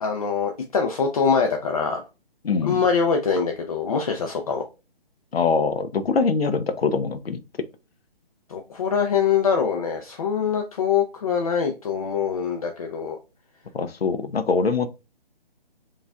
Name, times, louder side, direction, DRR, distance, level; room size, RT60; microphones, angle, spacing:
voice 1, 0.0-2.0 2.6-4.6 8.5-13.2, left 6 dB, 40° left, 0.5 m, -23 dB
voice 2, 2.4-2.8 5.3-7.4 13.7-14.9, left 4 dB, 90° left, 0.5 m, -23 dB
4.4 x 2.4 x 2.3 m
figure-of-eight pair, 145°, 30 cm